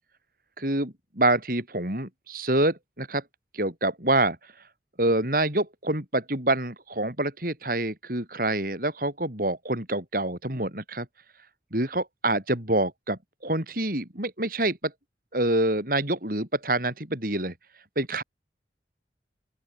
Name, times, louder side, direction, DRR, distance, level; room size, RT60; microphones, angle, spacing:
voice 1, 0.6-3.2 3.5-4.4 5.0-11.1 11.7-14.9 15.3-17.5 18.0-18.2, right 2 dB, 50° right, 5.6 m, -26 dB
open air
head